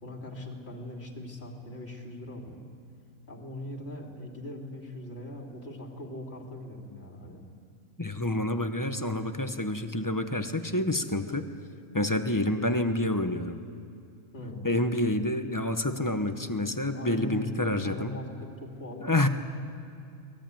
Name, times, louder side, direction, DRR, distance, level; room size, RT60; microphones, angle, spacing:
voice 1, 0.0-2.6 3.3-7.4 14.3-14.7 16.9-17.5 17.8-19.1, left 1 dB, 45° left, 1 dB, 2.9 m, -40 dB
voice 2, 8.0-11.5 11.9-13.6 14.6-18.1 19.0-19.3, left 1 dB, 15° left, 7 dB, 0.9 m, -28 dB
23.0 x 19.0 x 9.1 m, 2.5 s
omnidirectional pair, 1.5 m